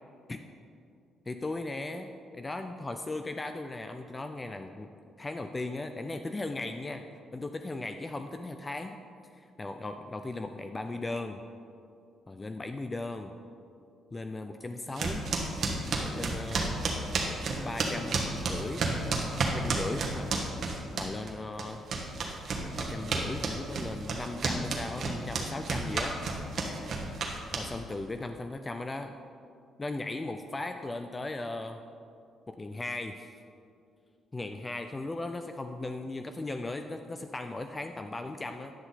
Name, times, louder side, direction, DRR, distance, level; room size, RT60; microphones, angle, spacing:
voice 1, 1.3-4.9 5.2-7.0 7.3-9.0 9.3-11.4 12.3-13.4 14.1-15.3 15.9-16.8 17.6-18.9 19.5-20.3 20.9-21.8 22.8-26.2 27.6-29.1 29.8-31.8 32.5-33.4 34.3-38.7, left 2 dB, 25° left, 7 dB, 0.4 m, -37 dB
sound 1, 15.0-21.3 21.6-27.9, right 3 dB, 55° right, 1.2 m, -31 dB
10.0 x 5.8 x 4.1 m, 2.5 s
cardioid pair, 90°, 0 cm